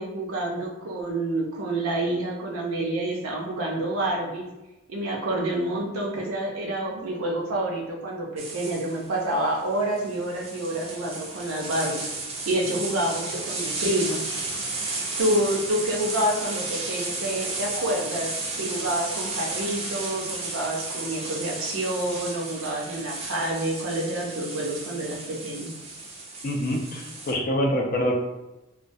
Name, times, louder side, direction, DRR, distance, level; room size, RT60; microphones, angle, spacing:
voice 1, 0.0-4.5 4.9-12.1 12.5-14.2 15.2-25.7, right 1 dB, 80° right, -1 dB, 0.6 m, -28 dB
sound 1, 8.4-27.3, right 3 dB, 30° right, 0.4 m, -33 dB
voice 2, 26.4-28.1, equal, 40° left, 0 dB, 0.4 m, -25 dB
2.2 x 2.1 x 2.6 m, 0.98 s
head